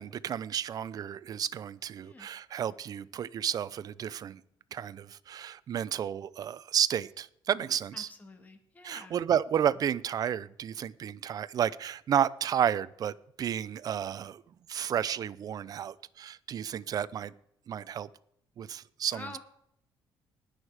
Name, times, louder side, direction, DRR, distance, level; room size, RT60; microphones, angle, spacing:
voice 1, 0.0-4.4 4.7-8.1 8.8-14.4 14.7-17.3 17.7-18.1 18.6-19.4, right 9 dB, 45° right, 18 dB, 0.5 m, -32 dB
voice 2, 7.9-9.2 19.1-19.4, left 3 dB, 20° left, 6 dB, 1.8 m, -47 dB
19.5 x 6.5 x 4.8 m, 0.70 s
cardioid pair, 130°, 9 cm